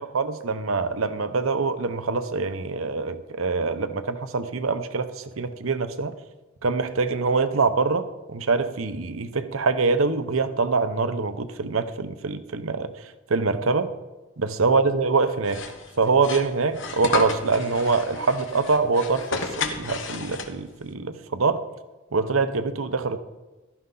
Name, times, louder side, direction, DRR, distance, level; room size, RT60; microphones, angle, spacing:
voice 1, 0.0-6.2 6.6-12.9 13.3-13.9 14.4-15.6 16.0-21.6 22.1-23.2, right 4 dB, 70° right, 11 dB, 0.8 m, -24 dB
sound 1, 15.4-20.8, left 4 dB, 60° left, 1.2 m, -32 dB
15.5 x 12.5 x 4.0 m, 1.1 s
head